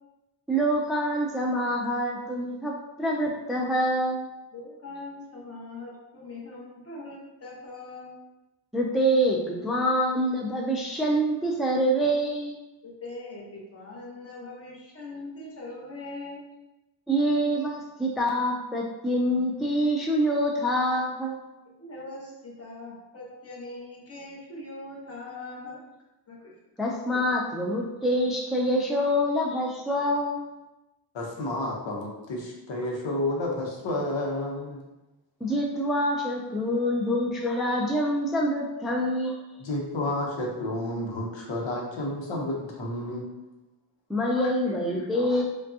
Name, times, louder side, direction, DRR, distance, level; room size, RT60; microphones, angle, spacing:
voice 1, 0.5-2.7 3.0-4.3 8.7-12.6 17.1-21.4 26.8-30.5 35.4-39.4 44.1-45.4, equal, ahead, -2 dB, 0.4 m, -26 dB
voice 2, 4.5-8.2 12.8-16.4 21.8-25.8 26.3-26.5, left 2 dB, 30° left, -4 dB, 1.1 m, -41 dB
voice 3, 31.1-34.8 39.6-43.3 44.3-45.4, left 1 dB, 80° left, -2 dB, 0.9 m, -31 dB
4.9 x 2.3 x 2.7 m, 1.0 s
wide cardioid pair, 130°, 44 cm